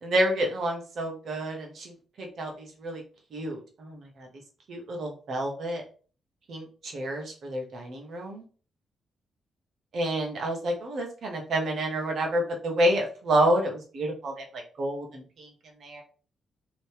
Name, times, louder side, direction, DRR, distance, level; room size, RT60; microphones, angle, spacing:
voice 1, 0.0-3.0 3.3-4.3 4.7-5.8 6.5-8.4 9.9-14.4 14.8-15.5 15.8-16.0, right 1 dB, 65° right, 2 dB, 1.0 m, -29 dB
3.0 x 2.7 x 3.3 m, 0.40 s
supercardioid pair, 50°, 0 cm